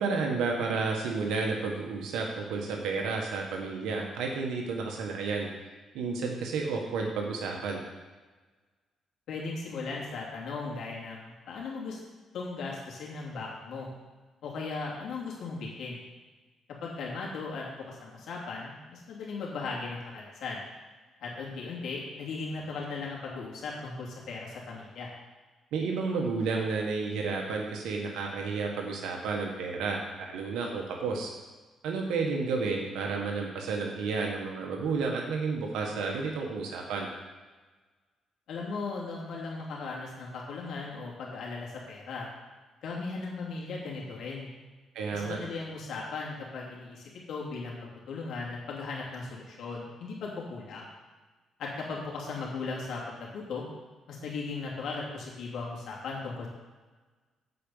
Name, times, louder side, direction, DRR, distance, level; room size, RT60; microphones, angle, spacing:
voice 1, 0.0-5.5 5.9-7.8 25.7-31.3 31.8-37.1 44.9-45.4, right 4 dB, 90° right, 0 dB, 1.4 m, -31 dB
voice 2, 9.3-12.0 12.3-13.9 14.4-16.0 16.8-20.6 21.2-25.1 38.5-42.3 42.8-44.5 45.1-50.9 51.6-53.6 54.1-56.5, left 4 dB, 75° left, -3 dB, 2.8 m, -37 dB
8.5 x 5.2 x 7.2 m, 1.3 s
cardioid pair, 90°, 0 cm